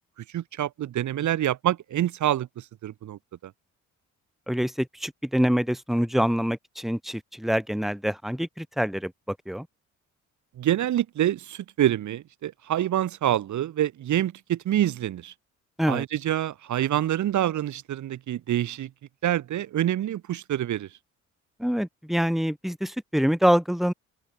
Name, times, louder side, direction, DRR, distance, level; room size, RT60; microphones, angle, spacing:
voice 1, 0.3-3.2 10.6-15.3 15.9-18.9 19.2-20.9, right 12 dB, 70° right, 3.4 m, -26 dB
voice 2, 4.5-9.7 15.8-16.0 21.6-23.9, equal, ahead, 4.1 m, -25 dB
cardioid pair, 90°, 30 cm